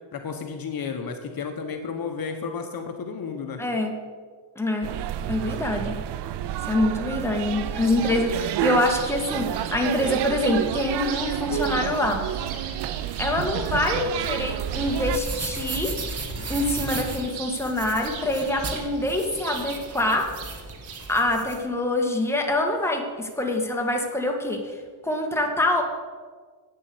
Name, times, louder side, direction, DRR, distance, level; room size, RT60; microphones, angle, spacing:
voice 1, 0.1-3.6, left 5 dB, 50° left, 5 dB, 1.3 m, -32 dB
voice 2, 3.6-3.9 4.5-4.9 5.3-6.0 6.6-12.2 13.2-15.9 16.5-20.3 21.1-24.8 25.0-25.8, left 1 dB, 5° left, 1 dB, 1.7 m, -25 dB
sound 1, 4.8-15.2, right 11 dB, 65° right, 0.6 m, -30 dB
sound 2, 7.4-21.2, right 6 dB, 90° right, 1.9 m, -40 dB
sound 3, 14.6-21.6, right 3 dB, 30° right, 1.6 m, -35 dB
8.8 x 7.4 x 7.9 m, 1.5 s
cardioid pair, 105°, 46 cm